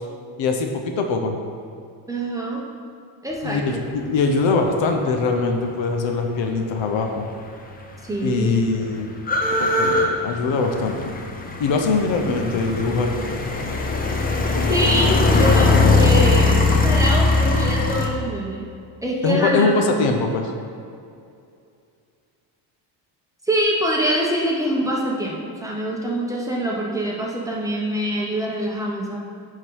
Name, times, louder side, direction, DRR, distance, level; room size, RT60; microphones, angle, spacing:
voice 1, 0.4-1.4 3.4-7.3 8.2-9.1 9.6-11.1 11.6-13.1 19.2-20.5, left 3 dB, 65° left, 4 dB, 1.0 m, -22 dB
voice 2, 2.1-2.6 3.2-3.8 8.0-8.9 14.7-18.6 19.0-19.8 23.4-29.2, right 1 dB, 5° right, -3 dB, 1.0 m, -24 dB
sound 1, 7.4-7.5 7.7-18.1, left 3 dB, 20° left, 0.7 m, -20 dB
9.8 x 4.0 x 4.7 m, 2.5 s
cardioid pair, 125°, 48 cm